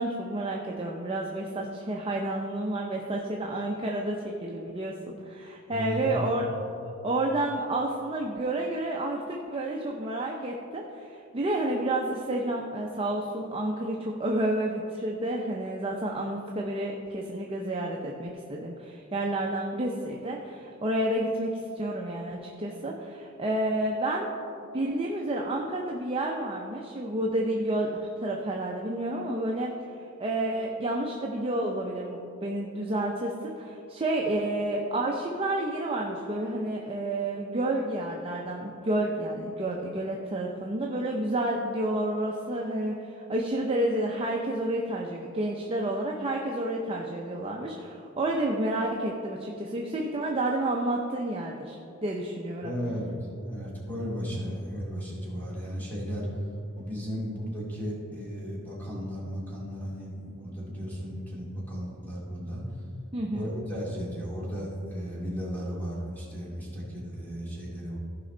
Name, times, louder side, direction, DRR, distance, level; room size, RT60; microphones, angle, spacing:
voice 1, 0.0-6.5 6.8-24.3 24.7-29.7 30.2-52.7 63.1-63.5, right 1 dB, 25° right, -1 dB, 0.6 m, -30 dB
voice 2, 5.7-6.2 52.6-53.1 53.5-56.4 56.7-62.6 63.3-68.0, equal, 10° left, -6 dB, 2.3 m, -35 dB
15.0 x 5.2 x 3.8 m, 2.7 s
head